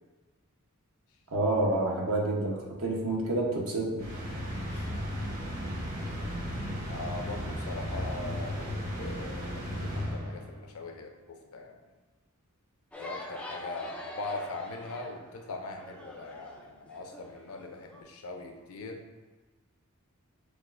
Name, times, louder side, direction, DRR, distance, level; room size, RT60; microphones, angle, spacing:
voice 1, 1.3-4.1, right 2 dB, 70° right, -3 dB, 1.0 m, -28 dB
sound 1, 4.0-10.7, equal, 45° right, 1.2 m, -35 dB
voice 2, 6.9-11.8 13.0-19.0, left 3 dB, 75° left, 4 dB, 0.5 m, -41 dB
sound 2, 12.9-18.0, left 1 dB, 5° left, 0.3 m, -45 dB
6.4 x 2.4 x 2.5 m, 1.3 s
head